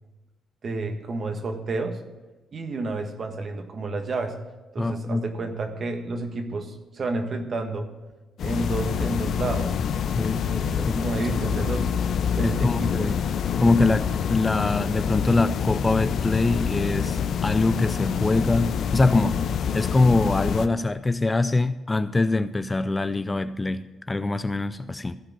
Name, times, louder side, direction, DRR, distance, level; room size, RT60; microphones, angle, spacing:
voice 1, 0.6-2.0 2.5-4.3 4.7-7.9 8.4-9.7 10.4-11.9 12.3-13.2, right 3 dB, 45° right, 6 dB, 1.4 m, -30 dB
voice 2, 4.8-5.2 10.1-10.4 10.9-11.0 12.4-13.2 13.6-19.4 19.7-25.2, left 2 dB, 20° left, 12 dB, 0.4 m, -23 dB
sound 1, 8.4-20.7, left 7 dB, 65° left, 0.7 m, -26 dB
14.5 x 4.9 x 7.2 m, 1.2 s
cardioid pair, 90°, 0 cm